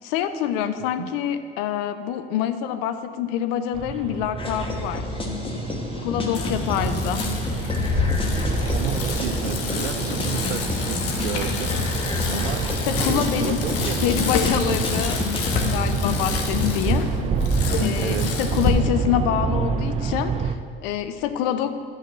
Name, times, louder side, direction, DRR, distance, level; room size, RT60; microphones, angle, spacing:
voice 1, 0.0-5.1 6.0-7.3 12.9-13.6 14.0-15.2 15.7-17.1 17.8-21.8, left 9 dB, 65° left, 10 dB, 0.7 m, -26 dB
voice 2, 0.8-1.1 8.7-11.8 12.3-12.7 13.0-14.6 18.0-18.4, right 10 dB, 75° right, 12 dB, 0.6 m, -33 dB
sound 1, 3.7-20.6, right 5 dB, 20° right, 0.3 m, -28 dB
sound 2, 4.4-15.6, left 3 dB, 15° left, 1.3 m, -29 dB
Bicycle, 6.3-18.7, left 5 dB, 45° left, 1.3 m, -28 dB
9.9 x 4.1 x 7.0 m, 2.4 s
hypercardioid pair, 75°, 32 cm